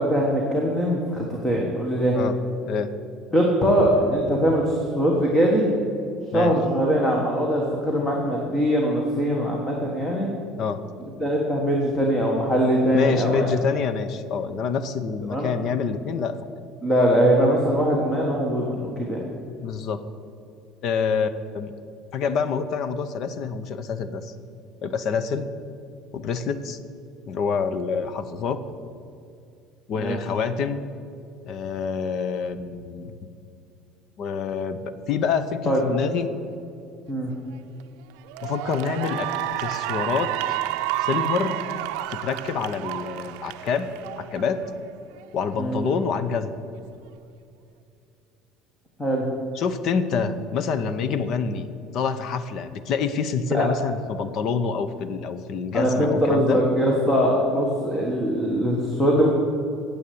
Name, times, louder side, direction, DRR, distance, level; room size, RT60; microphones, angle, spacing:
voice 1, 0.0-2.2 3.3-5.7 6.3-10.3 11.2-13.5 15.3-15.5 16.8-19.2 30.0-30.2 35.7-35.8 37.1-37.3 45.6-45.8 49.0-49.2 53.5-53.7 55.7-59.3, equal, 10° left, -1 dB, 1.3 m, -22 dB
voice 2, 12.9-16.3 19.6-20.0 20.8-21.3 21.5-21.7 22.1-24.3 24.8-25.5 26.1-26.8 27.3-28.6 29.9-30.8 31.5-33.3 34.2-36.3 38.4-39.3 39.6-40.6 41.0-41.5 42.1-44.7 45.3-46.6 49.5-56.6, left 6 dB, 40° left, 12 dB, 0.7 m, -27 dB
Cheering / Applause, 37.5-37.8 38.3-44.8, right 14 dB, 75° right, 0.5 m, -30 dB
9.7 x 7.8 x 8.5 m, 2.5 s
cardioid pair, 175°, 0 cm